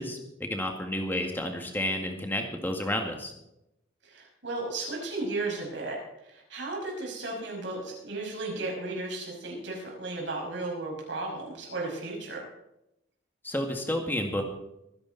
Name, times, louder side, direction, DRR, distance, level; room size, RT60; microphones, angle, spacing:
voice 1, 0.0-3.3 13.4-14.4, left 1 dB, 10° left, 3 dB, 1.9 m, -31 dB
voice 2, 4.0-12.5, right 2 dB, 70° right, -1 dB, 5.9 m, -35 dB
23.5 x 10.5 x 4.1 m, 0.84 s
head